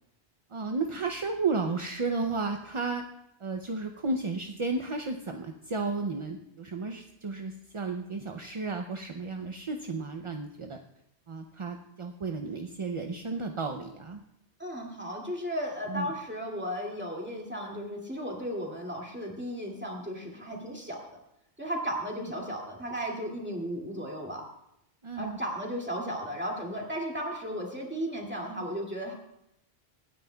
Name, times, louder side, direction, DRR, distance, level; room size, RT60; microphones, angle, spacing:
voice 1, 0.5-3.0 3.4-10.8 11.3-14.2 15.9-16.1 25.0-25.4, right 3 dB, 35° right, 4 dB, 0.5 m, -33 dB
voice 2, 14.6-21.0 21.6-24.4 25.1-29.1, equal, 10° right, -2 dB, 2.3 m, -35 dB
26.0 x 9.2 x 2.3 m, 0.81 s
omnidirectional pair, 1.1 m